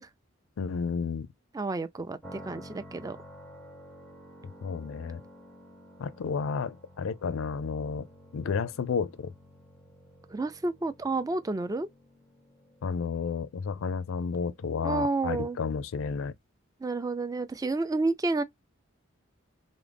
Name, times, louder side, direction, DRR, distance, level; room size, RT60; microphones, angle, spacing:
voice 1, 0.6-1.3 4.4-5.2 6.0-9.3 12.8-16.3, left 5 dB, 85° left, 0.4 m, -32 dB
voice 2, 1.5-3.2 10.3-11.9 14.8-15.6 16.8-18.4, right 3 dB, 20° right, 0.4 m, -30 dB
sound 1, 2.2-16.1, equal, ahead, 0.8 m, -52 dB
3.6 x 2.0 x 3.3 m
head